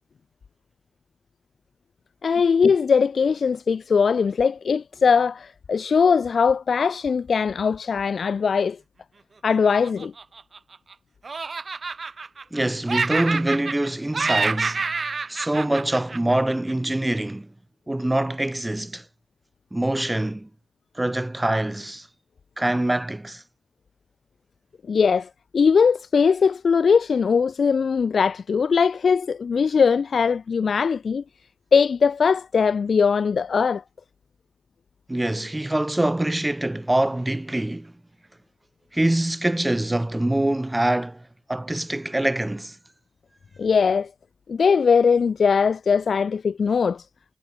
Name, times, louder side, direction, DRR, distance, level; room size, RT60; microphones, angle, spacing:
voice 1, 2.2-8.8 9.4-10.1 24.9-31.2 31.7-33.8 43.6-44.1 44.5-47.0, left 6 dB, 75° left, 0.5 m, -20 dB
Laughter, 9.7-10.9 11.2-12.6 12.9-13.9 14.1-16.7, right 4 dB, 50° right, 4.3 m, -28 dB
voice 2, 12.5-14.8 15.3-17.5 17.9-19.0 19.7-20.5 20.9-22.1 22.6-23.4 35.1-37.9 38.9-42.8, right 1 dB, 15° right, 7.6 m, -24 dB
wide cardioid pair, 110°, 0 cm